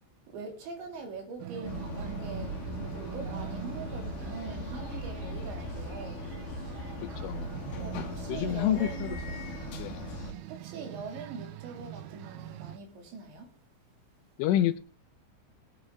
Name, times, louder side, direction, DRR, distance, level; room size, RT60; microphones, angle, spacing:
voice 1, 0.3-6.2 7.8-9.2 10.5-13.5, right 4 dB, 65° right, 4.8 m, -42 dB
sound 1, 1.4-12.8, right 14 dB, 80° right, 2.3 m, -43 dB
sound 2, 1.6-10.3, left 1 dB, 60° left, 2.8 m, -38 dB
voice 2, 7.2-7.5 8.3-9.1 9.8-10.0 14.4-14.8, left 12 dB, 80° left, 3.2 m, -28 dB
20.5 x 8.6 x 3.7 m
omnidirectional pair, 5.7 m